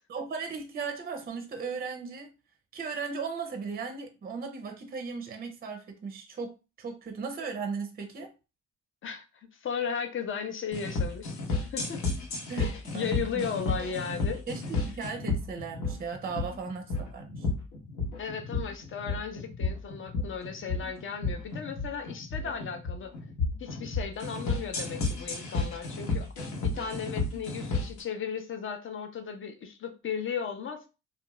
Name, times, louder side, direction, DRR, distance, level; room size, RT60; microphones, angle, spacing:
voice 1, 0.1-2.3 2.7-8.3 12.5-13.5 14.5-17.5, right 5 dB, 30° right, 0.5 m, -37 dB
voice 2, 9.0-12.0 12.6-14.4 18.2-23.1 23.6-26.3 26.6-30.9, left 7 dB, 40° left, 0.6 m, -36 dB
sound 1, 10.7-28.0, left 3 dB, 75° left, 0.9 m, -32 dB
2.4 x 2.3 x 3.0 m
cardioid pair, 90°, 30 cm